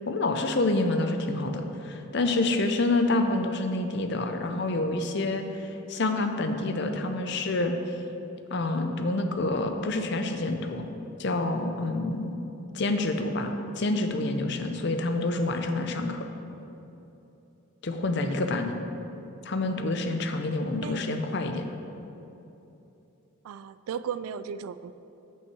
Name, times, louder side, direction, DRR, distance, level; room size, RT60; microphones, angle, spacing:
voice 1, 0.1-7.7 8.5-10.8 11.2-13.5 13.8-16.2 17.8-18.7 19.4-21.6, left 2 dB, 50° left, 6 dB, 0.6 m, -27 dB
voice 2, 23.4-24.9, right 7 dB, 90° right, 14 dB, 0.3 m, -35 dB
6.3 x 5.5 x 7.0 m, 3.0 s
head